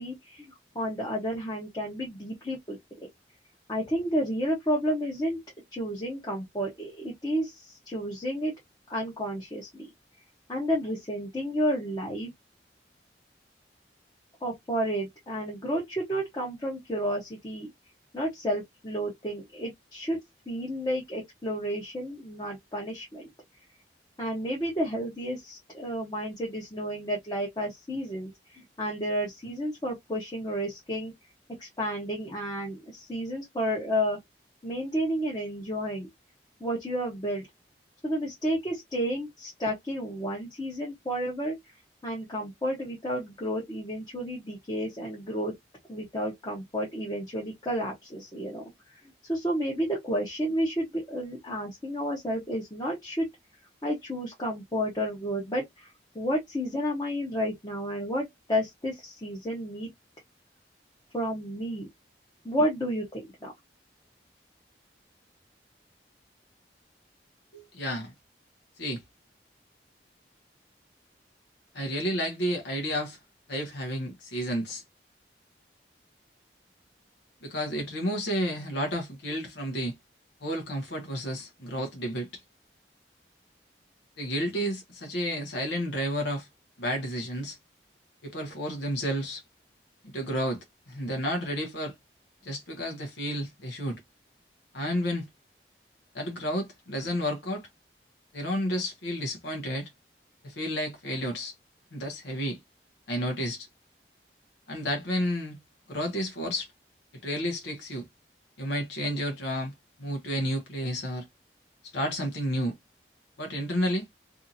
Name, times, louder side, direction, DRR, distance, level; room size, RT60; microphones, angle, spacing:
voice 1, 0.0-2.8 3.7-5.4 5.7-8.5 8.9-9.9 10.5-12.3 14.4-17.7 18.1-20.2 20.5-23.3 24.2-31.1 31.6-34.2 34.6-36.1 36.6-37.5 38.0-41.6 42.0-45.5 45.9-48.6 49.2-53.3 53.8-55.9 56.1-59.9 61.1-61.9 62.4-63.5, equal, 25° left, 0.8 m, -31 dB
voice 2, 67.5-68.1 68.8-69.0 71.7-73.2 73.5-74.8 77.4-79.9 80.4-82.4 84.2-86.5 86.8-87.6 88.2-89.4 90.0-91.9 92.4-94.0 94.7-95.3 96.1-97.6 98.3-99.9 100.4-101.5 101.9-102.6 103.1-103.7 104.7-105.6 105.9-106.7 107.2-108.0 108.6-109.7 110.0-111.3 111.8-112.7 113.4-114.1, equal, 80° left, 0.8 m, -31 dB
2.6 x 2.5 x 2.6 m
head